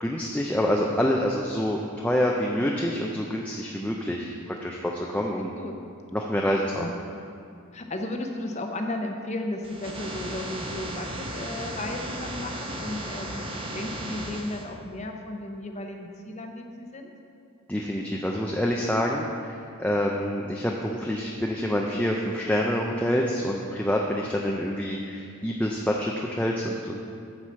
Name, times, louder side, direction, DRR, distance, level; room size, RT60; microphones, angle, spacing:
voice 1, 0.0-5.5 6.1-6.9 17.7-27.0, equal, 5° left, -1 dB, 0.4 m, -27 dB
voice 2, 5.4-5.7 6.8-6.9 7.7-17.1, left 1 dB, 30° left, 3 dB, 0.7 m, -34 dB
sound 1, 9.6-14.6, right 1 dB, 25° right, 0.9 m, -35 dB
10.0 x 4.8 x 7.3 m, 2.5 s
head